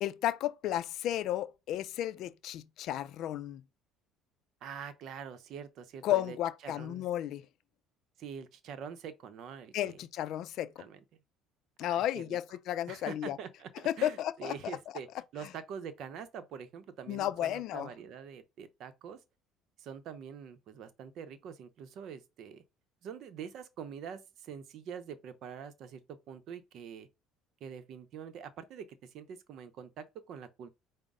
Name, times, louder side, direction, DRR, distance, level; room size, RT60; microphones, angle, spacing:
voice 1, 0.0-3.6 6.0-7.4 9.7-10.8 11.8-13.4 13.8-14.5 17.1-17.9, left 12 dB, 65° left, 0.4 m, -33 dB
voice 2, 4.6-6.4 6.6-7.1 8.2-10.0 10.8-11.0 11.8-12.4 12.9-15.1 15.3-19.2 19.8-22.6 23.0-27.1 27.6-30.7, right 7 dB, 60° right, 0.7 m, -45 dB
5.1 x 2.1 x 3.6 m
supercardioid pair, 90°, 0 cm